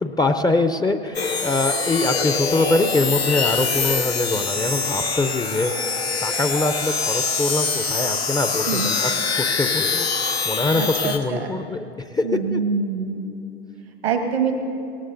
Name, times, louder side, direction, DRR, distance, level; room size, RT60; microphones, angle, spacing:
voice 1, 0.0-5.7 6.2-11.9 12.1-12.6, left 2 dB, 15° left, 8 dB, 0.6 m, -23 dB
sound 1, 1.1-11.2, left 4 dB, 85° left, 1.1 m, -24 dB
voice 2, 10.7-11.5 12.2-13.3 14.0-14.6, right 6 dB, 80° right, 5 dB, 1.3 m, -25 dB
19.0 x 18.5 x 2.6 m, 2.8 s
figure-of-eight pair, 80°, 31 cm